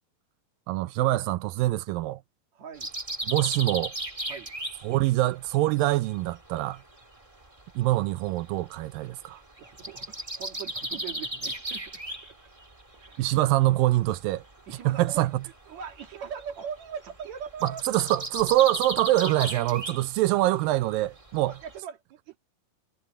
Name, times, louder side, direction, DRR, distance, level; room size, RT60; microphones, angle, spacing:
voice 1, 0.7-2.2 3.3-4.0 4.8-6.8 7.8-9.4 13.2-14.4 14.9-15.3 17.6-21.5, right 16 dB, 80° right, 2.2 m, -24 dB
voice 2, 2.5-2.9 4.3-4.5 9.6-12.4 13.0-13.3 14.7-15.3 15.7-17.9 21.5-22.4, right 7 dB, 55° right, 2.8 m, -40 dB
sound 1, 2.8-7.0 7.3-13.6 13.9-21.8, right 1 dB, 15° right, 1.2 m, -36 dB
omnidirectional pair, 4.3 m